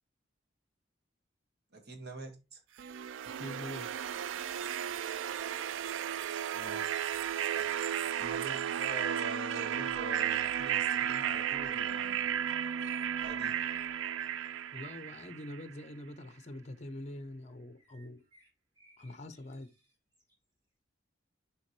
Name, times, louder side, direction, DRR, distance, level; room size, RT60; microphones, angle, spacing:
voice 1, 1.7-2.6 6.5-6.8 7.5-7.7 8.0-12.3 13.2-13.6, right 2 dB, 55° right, 1.8 m, -45 dB
sound 1, 2.6-4.0 7.8-9.2 11.8-13.8 14.4-14.5 15.1-15.2 15.3-15.4 17.8-20.4, right 1 dB, 20° right, 3.3 m, -66 dB
sound 2, 2.8-15.7, right 9 dB, 80° right, 0.3 m, -34 dB
voice 2, 3.4-3.9 14.7-18.2 19.0-19.7, left 1 dB, 35° left, 0.7 m, -44 dB
7.0 x 5.2 x 3.2 m
head